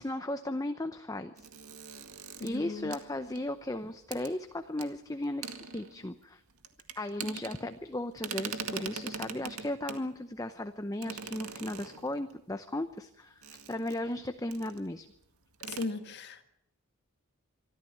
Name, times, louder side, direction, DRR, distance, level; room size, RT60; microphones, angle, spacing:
voice 1, 0.0-1.5 2.4-6.4 7.0-15.1, left 1 dB, 15° left, 8 dB, 0.7 m, -36 dB
sound 1, 1.4-3.7 4.1-4.3 4.8-4.9 5.2-6.2 6.6-7.9 8.2-10.1 11.0-12.3 13.4-14.2 14.5-14.8 15.1-15.2 15.5-15.9, right 6 dB, 80° right, 2.0 m, -42 dB
voice 2, 2.4-2.9 7.2-7.4 15.7-16.4, left 3 dB, 50° left, 8 dB, 1.8 m, -37 dB
25.0 x 14.0 x 8.7 m, 0.79 s
head